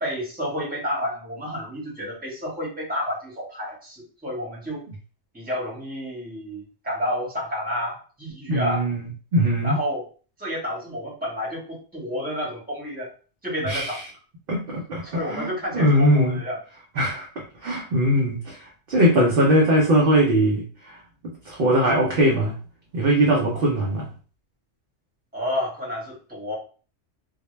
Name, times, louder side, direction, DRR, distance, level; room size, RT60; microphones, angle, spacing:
voice 1, 0.0-4.8 5.3-8.8 9.6-10.0 10.4-13.1 13.4-14.0 15.0-16.6 25.3-26.6, equal, 10° right, -5 dB, 0.9 m, -30 dB
voice 2, 8.5-9.8 13.7-14.0 14.5-16.4 17.0-21.0 21.2-22.6 22.9-24.1, equal, 60° right, -1 dB, 0.6 m, -21 dB
2.2 x 2.1 x 3.0 m, 0.39 s
omnidirectional pair, 1.2 m